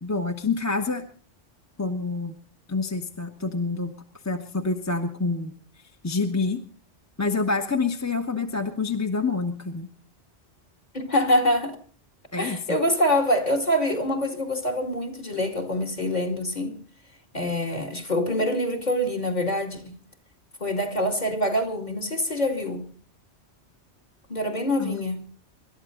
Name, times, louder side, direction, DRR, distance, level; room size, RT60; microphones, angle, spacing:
voice 1, 0.0-1.0 1.8-2.3 2.7-3.9 4.2-5.5 6.0-6.6 7.2-9.9 12.3-12.6 24.8-25.0, left 4 dB, 15° left, 1.1 m, -27 dB
voice 2, 10.9-11.8 12.4-16.8 17.3-19.9 20.6-22.9 24.3-25.2, left 1 dB, 40° left, 2.5 m, -25 dB
26.0 x 12.5 x 3.8 m
omnidirectional pair, 1.2 m